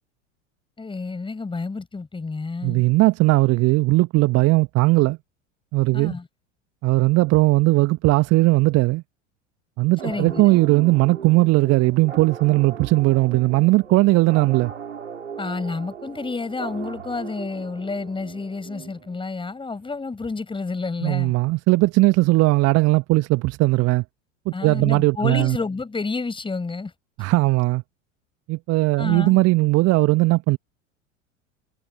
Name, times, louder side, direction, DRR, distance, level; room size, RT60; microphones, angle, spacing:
voice 1, 0.8-2.8 5.9-6.3 10.0-10.6 15.4-21.3 24.5-26.9 29.0-29.4, left 3 dB, 15° left, 6.1 m, -30 dB
voice 2, 2.6-5.2 5.7-6.1 6.8-9.0 9.8-14.7 21.0-24.0 24.4-25.6 27.2-27.8 28.5-30.6, right 21 dB, 40° right, 1.5 m, -18 dB
sound 1, 10.0-19.4, right 7 dB, 75° right, 4.8 m, -38 dB
figure-of-eight pair, 80°, 38 cm